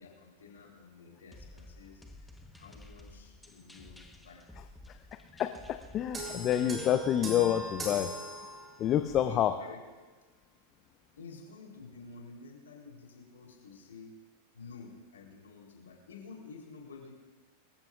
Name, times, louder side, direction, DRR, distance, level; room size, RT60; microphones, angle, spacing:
voice 1, 0.0-4.4 9.2-9.8 11.2-14.1 14.5-17.1, left 4 dB, 75° left, -1 dB, 3.8 m, -50 dB
sound 1, 1.3-7.0, left 1 dB, 5° left, 1.2 m, -53 dB
voice 2, 5.4-8.1 8.8-9.5, left 10 dB, 35° left, 9 dB, 0.7 m, -28 dB
sound 2, 6.1-9.0, right 1 dB, 20° right, 3.7 m, -40 dB
24.0 x 14.5 x 2.5 m, 1.3 s
figure-of-eight pair, 90°, 0 cm